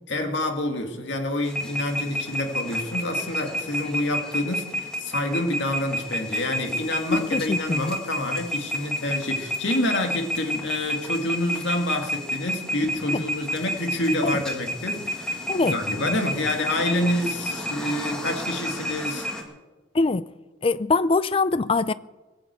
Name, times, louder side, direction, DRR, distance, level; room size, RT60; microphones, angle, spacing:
voice 1, 0.1-19.3, left 1 dB, 65° left, 2.0 m, -27 dB
sound 1, 1.4-19.4, equal, 5° left, 2.0 m, -31 dB
voice 2, 7.1-7.9 13.1-13.2 14.2-14.4 15.5-15.7 19.9-20.2 20.6-21.9, left 3 dB, 30° left, 0.4 m, -23 dB
20.0 x 7.8 x 8.1 m
head